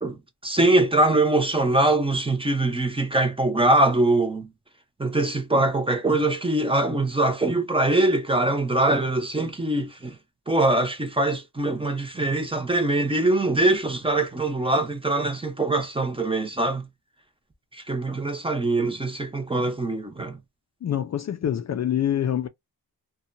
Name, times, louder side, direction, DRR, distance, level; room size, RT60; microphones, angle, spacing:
voice 1, 0.0-4.5 5.0-10.2 10.5-16.9 17.7-20.4, right 2 dB, 15° right, 0.7 m, -23 dB
voice 2, 20.8-22.5, left 10 dB, 45° left, 0.4 m, -25 dB
2.7 x 2.3 x 2.5 m
wide cardioid pair, 100°, 37 cm